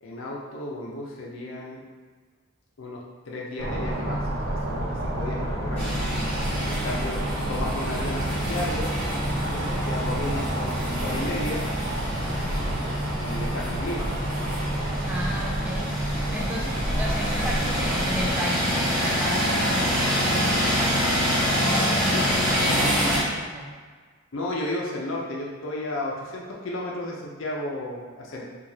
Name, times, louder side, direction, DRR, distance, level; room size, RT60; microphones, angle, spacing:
voice 1, 0.0-1.8 2.8-5.9 6.6-7.2 7.5-8.9 9.5-11.7 13.2-14.1 22.1-22.2 24.3-28.4, left 1 dB, 65° left, -3 dB, 0.6 m, -33 dB
sound 1, 3.6-18.4, right 1 dB, 75° right, 0.9 m, -29 dB
sound 2, 5.8-23.2, equal, 10° left, 1.3 m, -27 dB
voice 2, 15.1-15.9 16.3-20.9 21.6-23.0 23.4-23.7, equal, 5° right, -3 dB, 0.4 m, -34 dB
4.7 x 2.5 x 2.7 m, 1.5 s
head